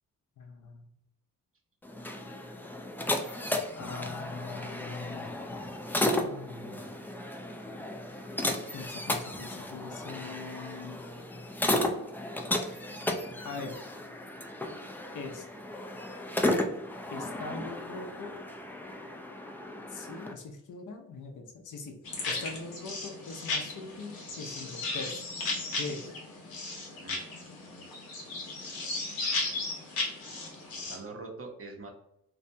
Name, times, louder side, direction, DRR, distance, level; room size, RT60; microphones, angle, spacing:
voice 1, 0.4-0.9 3.7-5.3 6.2-6.8 8.7-11.0 13.4-13.8 15.1-15.5 17.1-18.3 19.9-22.0 22.3-25.2 25.8-26.2, left 4 dB, 60° left, 3 dB, 0.6 m, -41 dB
sound 1, 1.8-20.3, left 1 dB, 5° left, 0.3 m, -34 dB
sound 2, 22.0-31.0, left 3 dB, 90° left, 0.8 m, -35 dB
voice 2, 27.0-27.9 30.0-31.9, right 3 dB, 40° right, 2 dB, 0.7 m, -46 dB
2.7 x 2.1 x 2.6 m, 0.80 s
cardioid pair, 60°, 35 cm